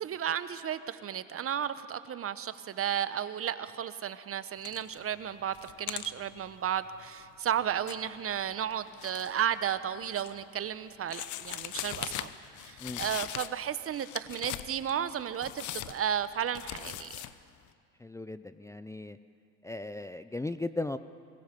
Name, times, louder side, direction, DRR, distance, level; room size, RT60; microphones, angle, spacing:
voice 1, 0.0-12.3 12.6-17.1, right 9 dB, 40° right, 13 dB, 1.1 m, -33 dB
sound 1, 4.6-5.0 5.4-9.4 9.8-10.6 11.1-13.7 13.9-17.3, left 13 dB, 60° left, 1.0 m, -41 dB
voice 2, 18.0-19.2 19.6-21.0, left 2 dB, 10° left, 12 dB, 0.6 m, -37 dB
24.5 x 22.0 x 5.4 m, 2.3 s
supercardioid pair, 80°, 34 cm